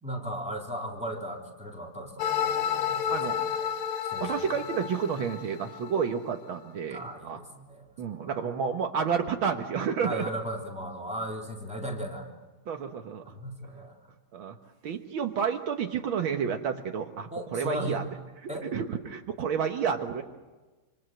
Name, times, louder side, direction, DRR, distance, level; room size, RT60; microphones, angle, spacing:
voice 1, 0.0-3.7 4.0-4.4 6.9-8.4 10.0-12.3 13.3-13.9 17.3-18.0 18.5-18.7, equal, 5° right, 0 dB, 3.4 m, -37 dB
sound 1, 2.2-6.2, left 8 dB, 80° left, 1.9 m, -31 dB
voice 2, 3.1-3.4 4.2-7.4 8.0-10.3 12.7-13.2 14.3-14.6 14.8-18.0 18.4-20.2, right 7 dB, 75° right, 4 dB, 2.0 m, -30 dB
26.5 x 26.5 x 7.8 m, 1.2 s
omnidirectional pair, 2.3 m